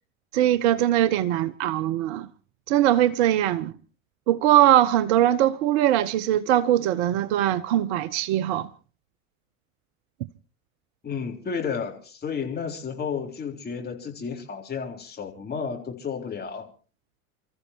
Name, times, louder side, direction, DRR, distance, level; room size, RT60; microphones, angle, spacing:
voice 1, 0.3-2.3 2.7-3.7 4.3-8.7, right 12 dB, 50° right, 0.7 m, -21 dB
voice 2, 11.0-16.7, left 6 dB, 20° left, 3.7 m, -32 dB
29.5 x 14.5 x 3.0 m
figure-of-eight pair, 80°, 43 cm